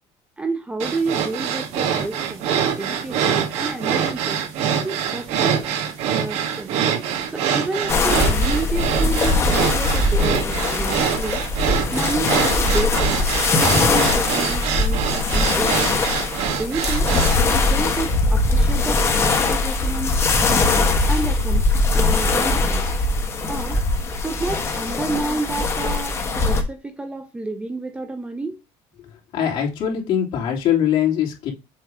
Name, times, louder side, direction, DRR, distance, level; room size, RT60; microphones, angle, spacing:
voice 1, 0.4-2.5 2.8-4.4 4.8-5.7 6.1-6.7 7.3-11.4 11.9-16.0 16.6-17.1 17.5-20.2 21.1-21.6 21.9-22.9 23.5-23.8 24.2-28.6, right 3 dB, 10° right, 0.7 m, -30 dB
sound 1, 0.8-17.4, right 8 dB, 65° right, 1.5 m, -24 dB
sound 2, 7.9-26.6, left 3 dB, 20° left, 1.4 m, -21 dB
voice 2, 29.3-31.5, left 9 dB, 50° left, 3.0 m, -22 dB
7.6 x 3.1 x 4.9 m
cardioid pair, 155°, 12 cm